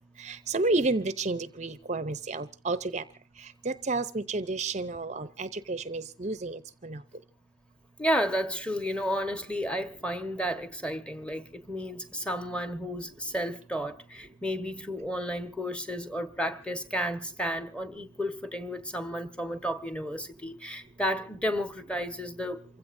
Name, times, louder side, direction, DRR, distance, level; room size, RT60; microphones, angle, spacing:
voice 1, 0.2-3.0 3.6-7.0, right 3 dB, 40° right, 0.7 m, -31 dB
voice 2, 8.0-22.6, equal, 5° left, 1.3 m, -32 dB
28.0 x 16.0 x 2.6 m
head